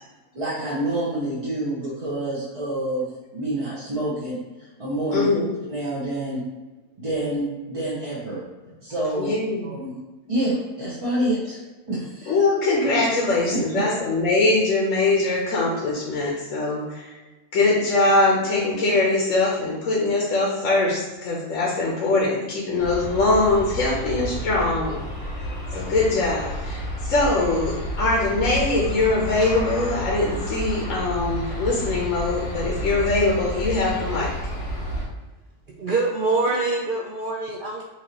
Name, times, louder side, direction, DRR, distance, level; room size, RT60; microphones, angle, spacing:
voice 1, 0.3-5.3 5.7-6.4 7.0-8.4 8.8-9.4 9.6-10.0 10.3-11.6 11.9-12.4 13.5-13.9, right 1 dB, 30° right, -8 dB, 0.8 m, -27 dB
voice 2, 5.1-5.5 9.2-9.6 12.3-17.2 17.5-25.0 25.7-34.3, left 2 dB, 65° left, -4 dB, 1.2 m, -22 dB
Aircraft, 22.8-35.1, equal, 85° left, 1.6 m, -30 dB
voice 3, 35.8-37.8, right 3 dB, 70° right, -2 dB, 0.4 m, -24 dB
5.8 x 2.7 x 3.0 m, 1.2 s
omnidirectional pair, 1.5 m